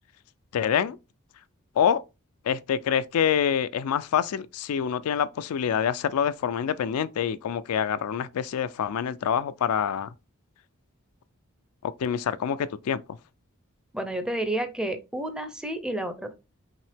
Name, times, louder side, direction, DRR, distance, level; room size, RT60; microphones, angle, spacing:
voice 1, 0.5-1.0 1.8-2.0 2.5-10.1 11.8-13.0, left 8 dB, 75° left, 0.4 m, -26 dB
voice 2, 13.9-16.3, right 1 dB, 5° right, 0.5 m, -30 dB
5.5 x 2.8 x 3.4 m
head